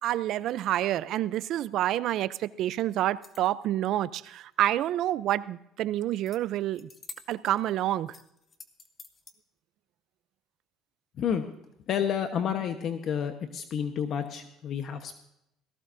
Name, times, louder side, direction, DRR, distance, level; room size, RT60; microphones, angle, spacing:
voice 1, 0.0-6.9 7.3-8.2, right 13 dB, 60° right, 17 dB, 0.5 m, -28 dB
sound 1, 3.0-3.7 6.3-6.4 6.7-7.6 8.1-9.3, left 4 dB, 30° left, 1.4 m, -48 dB
voice 2, 11.9-15.1, left 8 dB, 50° left, 7 dB, 1.1 m, -30 dB
18.0 x 15.5 x 2.7 m, 0.80 s
cardioid pair, 120°, 0 cm